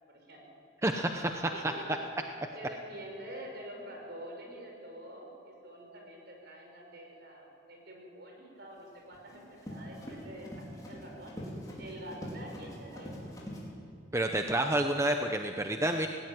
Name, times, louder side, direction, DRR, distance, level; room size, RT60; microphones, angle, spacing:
voice 1, 0.1-0.4 1.5-2.0 2.5-11.3 11.8-13.3, right 1 dB, 60° right, 1 dB, 5.4 m, -47 dB
voice 2, 0.8-1.5 14.1-16.1, right 1 dB, 15° right, 5 dB, 0.8 m, -29 dB
Run, 8.8-13.6, equal, 20° left, 4.3 m, -43 dB
18.0 x 17.5 x 9.5 m, 2.6 s
head